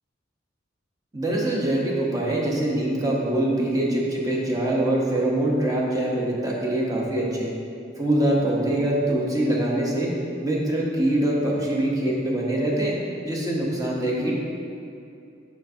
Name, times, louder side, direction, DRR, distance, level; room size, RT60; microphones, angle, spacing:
voice 1, 1.1-7.5 8.0-13.0 13.3-14.3, right 1 dB, 20° right, -3 dB, 0.8 m, -24 dB
6.5 x 5.9 x 2.7 m, 2.6 s
head